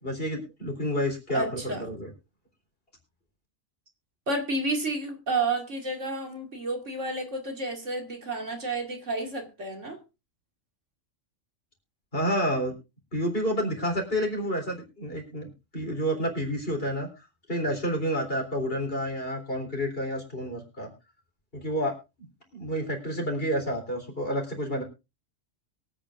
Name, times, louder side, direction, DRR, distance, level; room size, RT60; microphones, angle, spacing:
voice 1, 0.0-1.6 1.9-2.1 12.1-12.7 13.1-17.1 17.5-20.9 21.5-22.3 22.5-24.8, equal, 45° left, 3 dB, 3.9 m, -29 dB
voice 2, 1.3-1.9 4.3-10.0, right 2 dB, 65° right, 2 dB, 2.7 m, -31 dB
23.0 x 8.9 x 2.5 m, 0.27 s
omnidirectional pair, 1.3 m